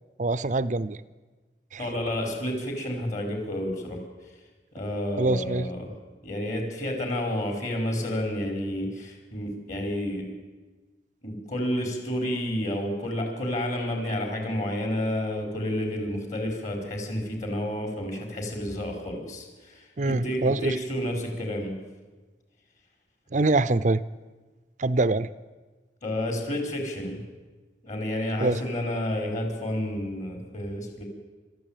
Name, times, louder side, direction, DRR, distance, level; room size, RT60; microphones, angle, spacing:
voice 1, 0.2-1.0 1.7-1.8 5.2-5.7 20.0-20.8 23.3-24.0 24.8-25.3 28.4-28.6, right 2 dB, 45° right, 15 dB, 0.6 m, -24 dB
voice 2, 1.8-4.0 4.7-5.9 6.2-10.3 11.2-21.8 26.0-27.2 27.8-31.0, left 1 dB, 45° left, 3 dB, 5.1 m, -30 dB
27.5 x 13.5 x 9.1 m, 1.3 s
head